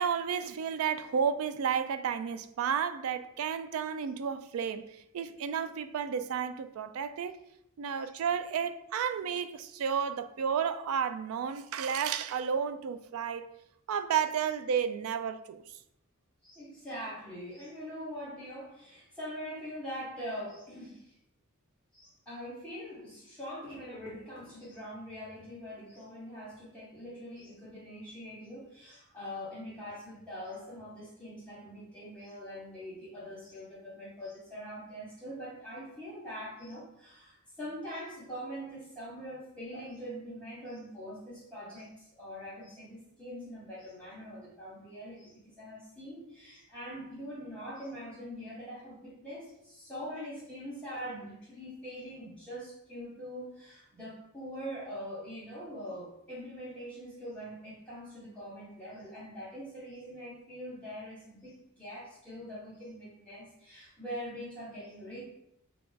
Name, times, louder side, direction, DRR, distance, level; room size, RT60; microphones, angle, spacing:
voice 1, 0.0-7.4 7.8-13.5 13.9-15.6, right 7 dB, 70° right, 0.3 m, -32 dB
voice 2, 16.4-21.2 21.9-65.2, equal, 5° left, 0.9 m, -43 dB
4.5 x 2.4 x 3.8 m
head